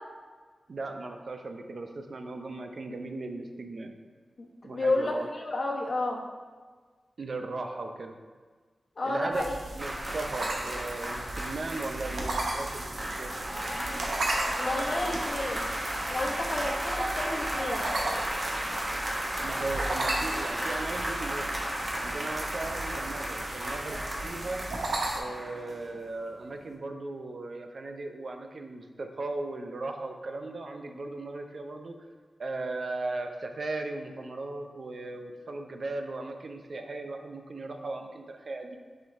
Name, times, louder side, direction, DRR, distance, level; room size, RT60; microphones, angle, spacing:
voice 1, 0.7-3.9 4.6-5.3 7.2-8.1 9.0-13.3 19.4-21.5 21.9-24.6 25.1-31.9 32.4-38.8, right 2 dB, 65° right, 4 dB, 0.6 m, -37 dB
voice 2, 4.4-6.2 9.0-9.5 14.6-15.6 16.1-17.8, left 2 dB, 55° left, 0 dB, 1.0 m, -31 dB
sound 1, 9.3-25.2, right 2 dB, 90° right, 1.0 m, -36 dB
sound 2, 9.8-26.1 26.3-26.5, right 1 dB, 30° right, 1.1 m, -34 dB
7.8 x 4.4 x 3.5 m, 1.5 s
wide cardioid pair, 70°, 0 cm